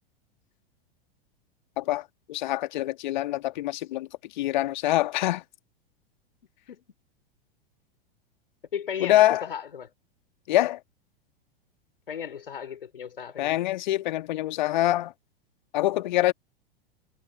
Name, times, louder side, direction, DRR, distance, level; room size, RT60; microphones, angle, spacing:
voice 1, 1.8-4.1 4.3-5.4 9.0-9.5 10.5-10.8 13.4-15.1 15.7-16.3, left 15 dB, 50° left, 1.8 m, -25 dB
voice 2, 8.7-9.9 12.1-13.6, left 8 dB, 65° left, 4.1 m, -36 dB
figure-of-eight pair, 95°, 30 cm